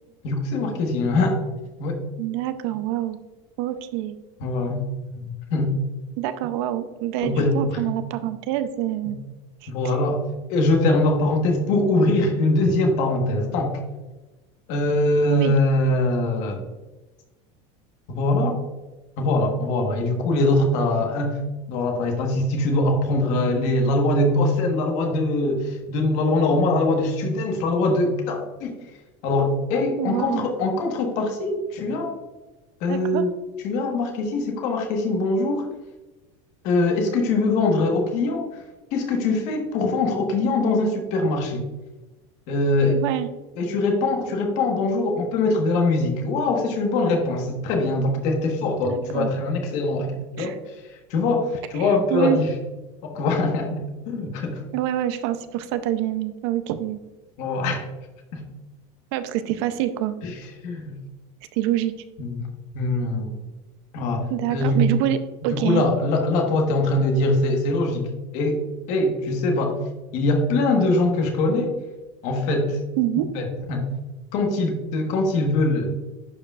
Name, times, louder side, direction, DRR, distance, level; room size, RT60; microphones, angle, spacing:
voice 1, 0.2-1.4 1.8-2.0 4.4-4.8 5.1-5.8 7.2-7.8 9.7-10.2 10.5-13.8 14.7-16.7 18.1-18.6 19.2-21.4 21.7-28.7 29.2-32.1 32.8-33.3 33.6-35.7 36.6-38.6 38.9-41.7 42.5-43.0 43.6-50.7 51.1-52.5 53.0-54.6 57.4-57.9 58.3-58.4 60.2-60.3 60.6-60.9 62.2-62.4 62.7-63.4 63.9-64.8 65.4-68.1 68.3-68.6 68.9-69.8 70.1-71.7 72.2-72.8 73.2-73.8 74.3-76.0, left 2 dB, 45° left, 3 dB, 1.4 m, -22 dB
voice 2, 2.2-3.2 3.6-4.2 6.2-9.2 9.6-9.7 15.3-15.5 30.0-30.5 32.9-33.2 42.9-43.3 48.8-49.3 50.4-50.6 51.8-52.4 54.7-57.0 59.1-60.2 61.5-61.9 64.3-65.2 65.4-65.8 73.0-73.3, right 13 dB, 55° right, 11 dB, 0.6 m, -26 dB
11.0 x 4.8 x 2.4 m, 1.1 s
cardioid pair, 180°, 17 cm